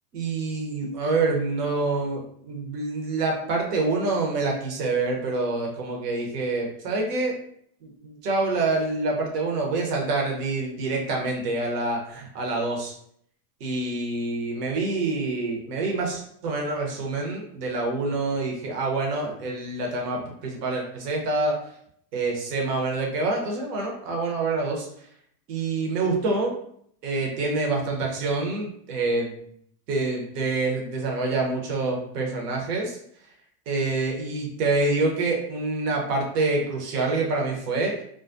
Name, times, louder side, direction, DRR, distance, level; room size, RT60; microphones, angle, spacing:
voice 1, 0.1-7.4 7.8-12.9 13.6-21.6 22.1-24.9 25.5-26.5 27.0-29.5 29.9-33.0 33.7-38.0, right 3 dB, 80° right, 0 dB, 0.8 m, -26 dB
2.3 x 2.2 x 2.5 m, 0.66 s
hypercardioid pair, 95°, 47 cm